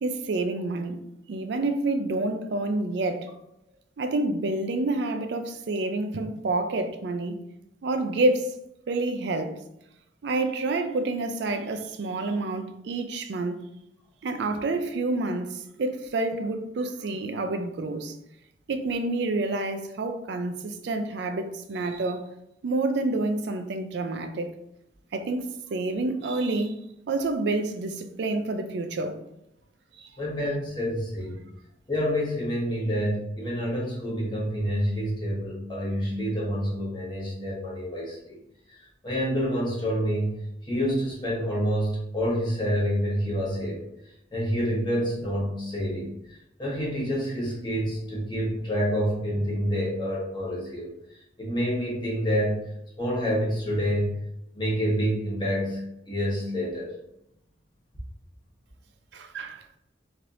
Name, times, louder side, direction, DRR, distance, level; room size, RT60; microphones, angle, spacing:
voice 1, 0.0-1.0 1.3-3.3 4.0-7.4 7.8-8.5 8.9-9.6 10.2-13.6 14.2-18.2 18.7-22.2 22.6-24.5 25.1-29.2 30.0-30.1 59.1-59.6, right 2 dB, 60° right, 0.4 m, -28 dB
voice 2, 30.2-31.4 31.9-38.4 38.7-52.6 53.0-54.1 54.5-56.9, equal, 25° left, 1.0 m, -28 dB
3.2 x 2.8 x 2.5 m
head